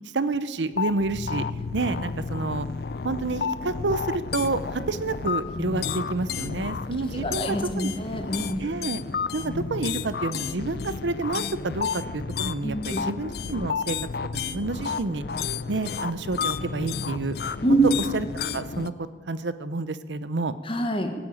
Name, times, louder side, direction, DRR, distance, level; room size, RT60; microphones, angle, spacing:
voice 1, 0.1-1.4 1.7-2.7 3.0-7.9 8.6-9.0 9.3-14.0 14.3-15.2 15.7-17.4 17.7-18.3 18.5-20.5, right 3 dB, 85° right, 14 dB, 0.8 m, -29 dB
sound 1, 0.7-18.9, left 5 dB, 60° left, 0.5 m, -31 dB
voice 2, 7.1-8.6 12.6-13.0 17.6-17.8 20.6-21.1, right 1 dB, 30° left, 6 dB, 1.4 m, -26 dB
17.5 x 8.8 x 8.6 m, 1.6 s
head